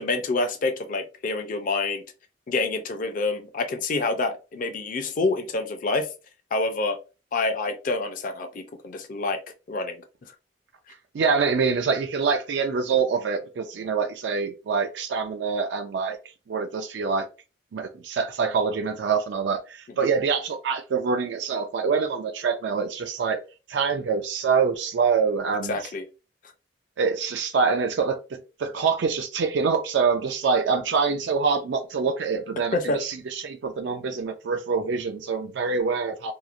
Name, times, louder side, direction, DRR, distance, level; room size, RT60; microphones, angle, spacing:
voice 1, 0.0-2.0 2.5-6.1 6.5-7.0 7.3-9.4 9.7-10.0 20.0-20.1 25.7-26.0 32.7-33.0, left 3 dB, 50° left, 0.4 m, -27 dB
voice 2, 11.1-16.2 16.5-17.3 17.7-23.4 23.7-25.8 27.0-36.3, right 5 dB, 80° right, 0.4 m, -25 dB
2.8 x 2.0 x 2.4 m
head